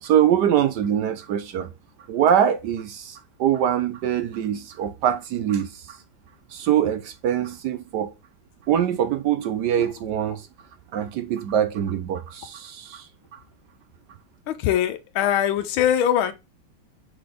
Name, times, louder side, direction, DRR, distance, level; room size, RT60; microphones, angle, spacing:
voice 1, 0.0-1.7 2.1-6.0 6.5-8.1 8.7-10.5 10.9-13.4, right 9 dB, 70° right, 1.1 m, -23 dB
voice 2, 14.5-16.3, left 10 dB, 80° left, 1.6 m, -22 dB
4.8 x 4.0 x 4.9 m
omnidirectional pair, 2.2 m